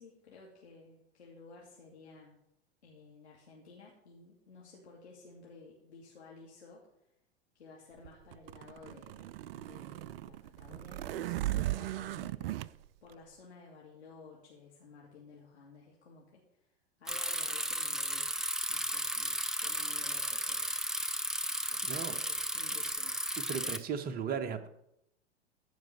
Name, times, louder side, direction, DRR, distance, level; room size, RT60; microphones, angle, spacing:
voice 1, 0.0-2.4 2.8-6.9 7.5-12.6 13.0-16.4 17.0-20.7 21.7-23.1, left 4 dB, 80° left, -4 dB, 2.7 m, -55 dB
sound 1, 8.1-12.7, right 15 dB, 60° right, 0.5 m, -37 dB
Bicycle, 17.1-23.8, equal, ahead, 0.5 m, -34 dB
voice 2, 21.8-22.2 23.5-24.7, right 7 dB, 25° right, 7 dB, 1.2 m, -36 dB
14.5 x 5.2 x 6.7 m, 0.80 s
figure-of-eight pair, 95°, 33 cm